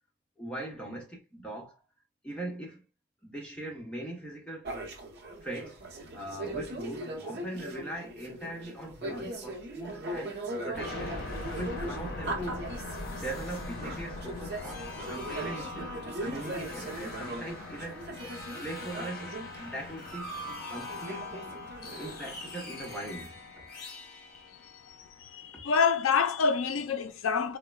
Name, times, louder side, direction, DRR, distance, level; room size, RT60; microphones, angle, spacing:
voice 1, 0.4-1.8 2.2-2.8 3.2-4.7 5.4-5.8 6.1-11.2 11.5-12.6 13.1-15.9 16.2-18.1 18.6-20.3 20.7-21.5 22.0-23.3 25.5-25.6, right 1 dB, 5° left, 0.9 m, -40 dB
sound 1, 4.6-19.6 20.1-20.2 20.4-23.1, right 2 dB, 55° right, 0.8 m, -40 dB
sound 2, 10.7-25.4, left 2 dB, 50° left, 0.8 m, -41 dB
voice 2, 24.9-27.6, left 5 dB, 80° left, 0.4 m, -27 dB
3.7 x 2.1 x 2.2 m
head